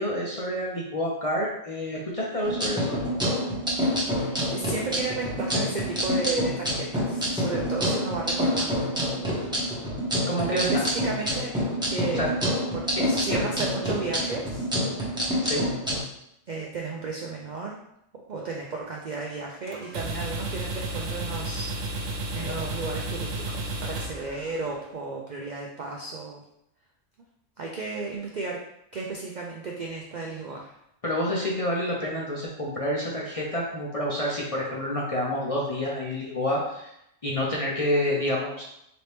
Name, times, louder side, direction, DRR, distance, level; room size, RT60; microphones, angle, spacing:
voice 1, 0.0-3.0 10.3-10.9 12.1-12.3 12.9-13.4 15.4-15.6 31.0-36.9 37.2-38.6, equal, 40° left, -4 dB, 0.6 m, -28 dB
sound 1, 2.4-16.0, equal, 5° right, 0.8 m, -27 dB
voice 2, 3.9-9.1 10.5-11.6 11.9-12.5 12.7-14.7 16.5-17.8 18.3-26.4 27.6-28.6 28.9-30.8, right 3 dB, 60° right, -1 dB, 0.4 m, -34 dB
sound 2, 19.7-24.9, right 2 dB, 90° right, 1.0 m, -33 dB
4.2 x 2.8 x 3.3 m, 0.78 s
omnidirectional pair, 1.3 m